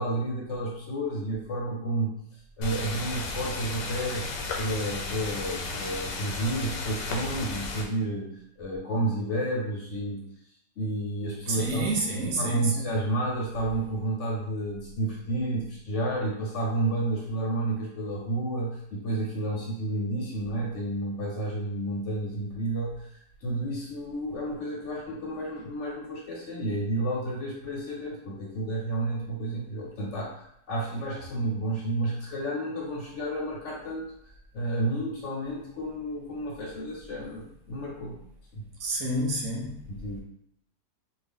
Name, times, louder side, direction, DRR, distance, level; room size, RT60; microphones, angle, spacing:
voice 1, 0.0-4.3 4.6-10.2 10.8-38.2 38.5-38.6 39.9-40.2, right 1 dB, 55° left, -3 dB, 0.9 m, -31 dB
sound 1, 2.6-7.8, left 3 dB, 85° left, 1.3 m, -34 dB
voice 2, 11.5-12.8 38.8-39.8, right 1 dB, 65° right, -1 dB, 0.9 m, -29 dB
2.7 x 2.4 x 3.5 m, 0.71 s
omnidirectional pair, 1.9 m